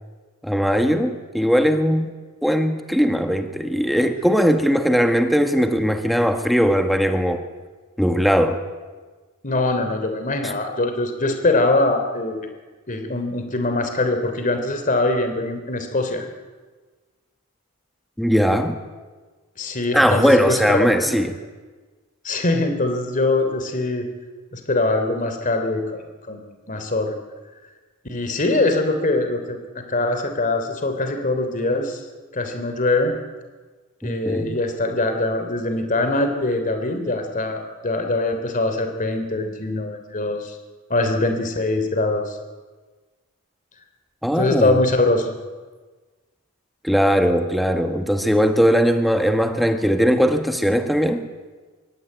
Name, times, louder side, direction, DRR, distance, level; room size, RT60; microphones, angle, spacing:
voice 1, 0.4-2.1 2.4-7.4 8.0-8.6 10.4-10.5 18.2-18.8 19.9-21.3 34.0-34.6 44.2-44.8 46.8-51.3, equal, ahead, 5 dB, 1.6 m, -19 dB
voice 2, 9.4-12.5 12.9-16.3 19.6-21.2 22.2-24.1 24.5-26.4 26.7-27.1 28.0-32.0 32.3-33.2 34.0-40.6 40.9-42.4 44.4-45.3, left 2 dB, 35° left, 6 dB, 3.2 m, -23 dB
25.5 x 23.5 x 9.5 m, 1.3 s
head